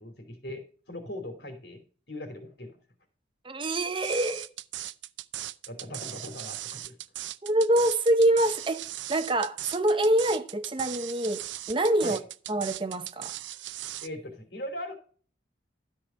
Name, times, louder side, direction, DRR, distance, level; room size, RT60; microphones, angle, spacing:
voice 1, 0.0-2.7 5.7-6.9 12.0-12.2 14.0-14.9, left 1 dB, 60° left, 2.9 m, -39 dB
voice 2, 3.4-4.5 7.4-12.2 12.5-13.3, right 1 dB, 25° right, 0.7 m, -25 dB
sound 1, 4.0-14.1, right 14 dB, 75° right, 0.5 m, -38 dB
13.0 x 5.0 x 5.6 m
head